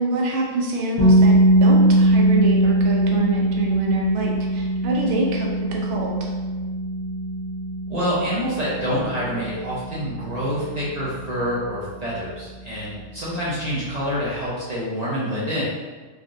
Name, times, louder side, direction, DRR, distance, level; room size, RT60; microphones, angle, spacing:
voice 1, 0.0-6.3, right 2 dB, 70° right, -1 dB, 0.9 m, -25 dB
sound 1, 1.0-12.8, right 1 dB, 50° left, 0.7 m, -21 dB
voice 2, 7.9-15.7, equal, 45° right, -8 dB, 0.5 m, -27 dB
3.3 x 2.3 x 2.6 m, 1.4 s
omnidirectional pair, 1.3 m